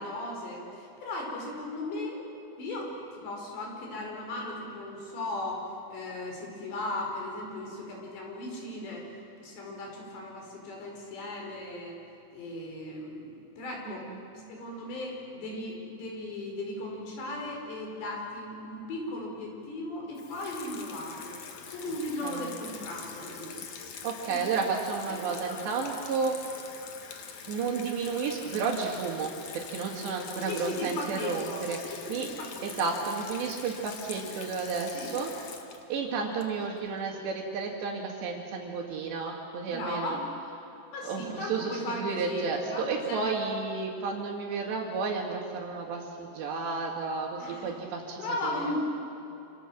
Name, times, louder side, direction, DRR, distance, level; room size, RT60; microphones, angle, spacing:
voice 1, 0.0-2.3 2.6-2.9 3.2-5.6 5.9-9.0 9.4-12.0 12.3-14.1 14.3-21.4 21.7-23.6 24.2-24.4 24.9-25.0 25.4-25.7 30.4-32.7 34.9-35.1 39.7-40.2 40.9-42.4 42.7-43.2 47.4-47.8 48.2-48.8, left 1 dB, 80° left, 0 dB, 7.2 m, -37 dB
voice 2, 13.9-14.2 22.2-22.6 24.0-26.4 27.5-32.3 32.6-35.3 35.9-40.2 41.0-48.6, right 4 dB, 80° right, -4 dB, 4.5 m, -32 dB
Water tap faucet / Sink (filling or washing), 20.2-36.9, left 6 dB, 55° left, 2.7 m, -44 dB
28.0 x 27.5 x 7.5 m, 2.9 s
omnidirectional pair, 4.9 m